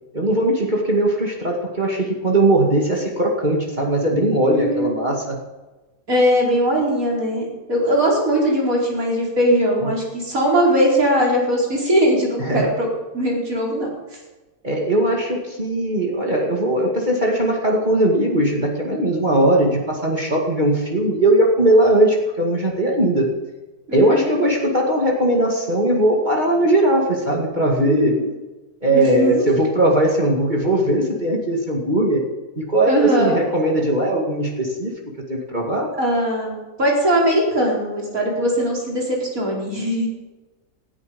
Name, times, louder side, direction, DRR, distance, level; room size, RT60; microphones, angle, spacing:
voice 1, 0.1-5.4 9.8-9.9 12.5-12.7 14.6-23.3 23.9-28.1 28.8-32.2 32.6-34.9 35.3-35.9, right 1 dB, 25° right, -1 dB, 2.4 m, -19 dB
voice 2, 4.5-4.9 6.1-12.9 13.1-13.9 23.9-24.3 27.8-28.2 28.9-29.4 32.9-33.4 36.0-40.1, equal, 55° right, -2 dB, 5.2 m, -20 dB
19.5 x 14.0 x 5.3 m, 1.2 s
omnidirectional pair, 1.8 m